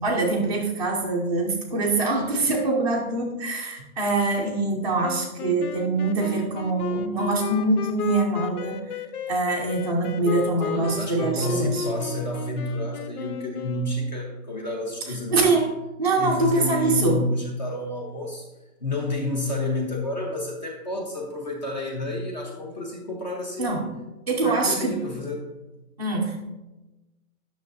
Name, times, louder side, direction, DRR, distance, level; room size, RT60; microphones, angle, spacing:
voice 1, 0.0-9.0 9.3-11.8 15.3-15.7 16.0-17.2 23.6-23.9 24.3-25.0 26.0-26.4, right 3 dB, 30° right, -5 dB, 0.5 m, -24 dB
sound 1, 5.0-14.2, left 7 dB, 90° left, 0.7 m, -34 dB
voice 2, 10.6-15.5 16.2-18.5 18.8-23.8 24.4-25.4, left 2 dB, 30° left, 0 dB, 0.8 m, -30 dB
9.8 x 6.3 x 2.6 m, 1.0 s
hypercardioid pair, 175°, 44 cm